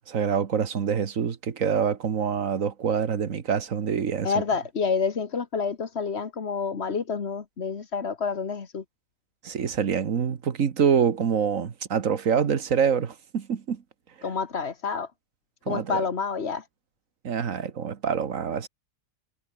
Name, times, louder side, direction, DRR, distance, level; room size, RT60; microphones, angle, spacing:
voice 1, 0.0-4.3 9.4-13.8 15.7-16.0 17.2-18.7, right 7 dB, 80° right, 1.8 m, -26 dB
voice 2, 4.2-8.8 14.2-15.1 15.7-16.7, left 5 dB, 50° left, 1.7 m, -28 dB
omnidirectional pair, 1.4 m